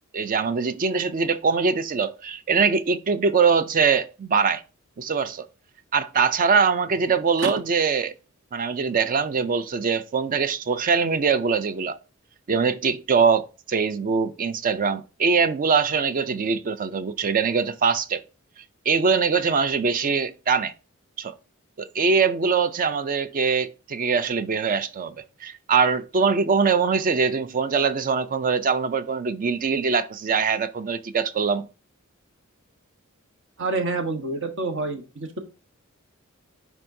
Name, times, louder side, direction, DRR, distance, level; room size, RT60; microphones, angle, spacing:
voice 1, 0.1-4.6 5.0-5.5 5.9-8.1 8.5-12.0 12.5-18.2 18.9-20.7 21.2-21.3 21.8-25.1 25.4-31.7, right 5 dB, 40° right, 0.4 m, -22 dB
voice 2, 33.6-35.4, right 3 dB, 65° right, 1.1 m, -27 dB
10.0 x 3.5 x 2.6 m
head